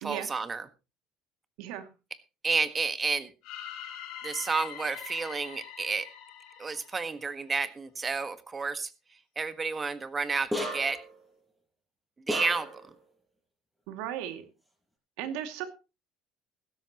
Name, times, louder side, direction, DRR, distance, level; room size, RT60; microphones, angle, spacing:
voice 1, 0.0-0.6 2.4-3.3 4.2-6.1 6.6-8.9 9.3-11.0 12.3-12.8, right 4 dB, 25° right, 11 dB, 1.5 m, -31 dB
sound 1, 3.4-7.5, left 9 dB, 75° left, 5.3 m, -43 dB
sound 2, 10.5-11.1 12.3-12.9, equal, 5° right, 5.7 m, -33 dB
voice 2, 13.9-14.4 15.2-15.7, right 10 dB, 85° right, 7 dB, 2.4 m, -35 dB
16.0 x 13.5 x 3.0 m, 0.30 s
cardioid pair, 115°, 0 cm